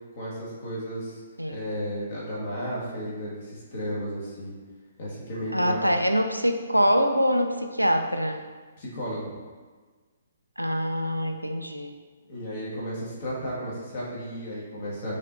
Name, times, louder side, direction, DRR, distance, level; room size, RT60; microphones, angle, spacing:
voice 1, 0.2-1.2 1.5-4.5 5.0-5.9 8.8-9.4 12.3-15.2, equal, 45° left, -6 dB, 1.4 m, -33 dB
voice 2, 5.5-8.5 10.6-11.9, equal, 90° right, 5 dB, 0.4 m, -24 dB
4.9 x 3.1 x 2.6 m, 1.4 s
figure-of-eight pair, 125°, 0 cm